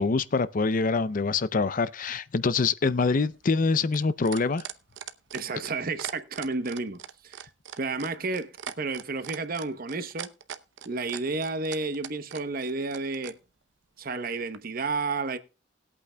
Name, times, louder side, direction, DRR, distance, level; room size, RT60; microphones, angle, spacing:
voice 1, 0.0-4.6, left 4 dB, 45° left, 0.5 m, -25 dB
sound 1, 2.8-13.4 14.5-14.6, right 8 dB, 80° right, 0.8 m, -40 dB
voice 2, 5.3-7.5 7.8-10.3 10.8-13.4 14.0-15.4, right 3 dB, 50° right, 0.9 m, -31 dB
20.5 x 8.5 x 2.3 m
head